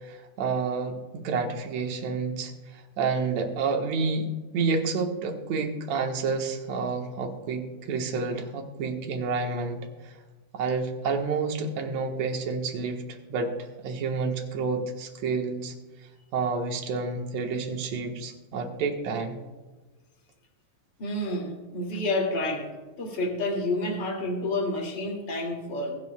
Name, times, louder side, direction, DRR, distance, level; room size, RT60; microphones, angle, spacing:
voice 1, 0.0-10.1 10.5-13.5 13.8-15.7 16.3-19.4, right 4 dB, 70° right, 3 dB, 2.4 m, -29 dB
voice 2, 21.0-22.7 23.0-25.9, left 1 dB, 35° left, 0 dB, 2.7 m, -29 dB
22.5 x 10.5 x 2.3 m, 1.3 s
omnidirectional pair, 3.5 m